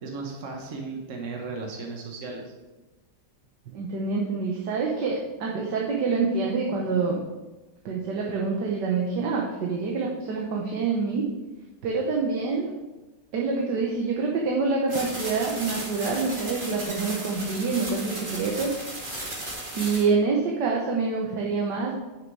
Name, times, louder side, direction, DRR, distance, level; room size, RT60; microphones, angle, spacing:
voice 1, 0.0-2.5, right 3 dB, 45° right, 1 dB, 1.5 m, -35 dB
voice 2, 3.7-7.2 7.8-11.2 11.8-12.7 13.3-18.7 19.7-21.9, right 4 dB, 70° right, -1 dB, 1.6 m, -26 dB
sound 1, 14.9-20.0, right 1 dB, 30° right, 2.1 m, -35 dB
9.4 x 6.6 x 4.7 m, 1.1 s
omnidirectional pair, 2.0 m